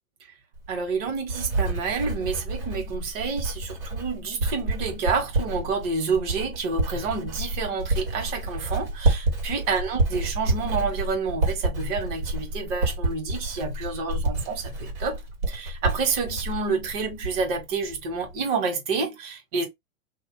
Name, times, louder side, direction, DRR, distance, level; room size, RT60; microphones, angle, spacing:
Writing, 0.6-17.6 17.9-18.3, right 2 dB, 85° right, 1.6 m, -29 dB
voice 1, 0.7-15.2 15.5-19.7, right 4 dB, 45° right, 1.5 m, -29 dB
2.8 x 2.2 x 3.7 m
hypercardioid pair, 115°, 41 cm